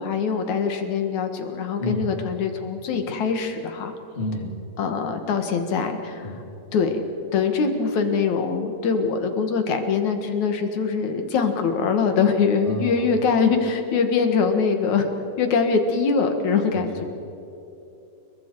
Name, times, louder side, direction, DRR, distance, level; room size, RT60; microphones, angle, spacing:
voice 1, 0.0-3.9 4.8-6.3 6.7-7.0 7.3-15.1 15.4-17.0, left 5 dB, 55° left, 6 dB, 2.6 m, -23 dB
voice 2, 1.8-2.2 4.2-4.6 6.2-6.5 12.6-13.1 16.7-17.0, left 1 dB, 20° left, 2 dB, 2.0 m, -30 dB
30.0 x 22.5 x 4.7 m, 2.9 s
omnidirectional pair, 4.5 m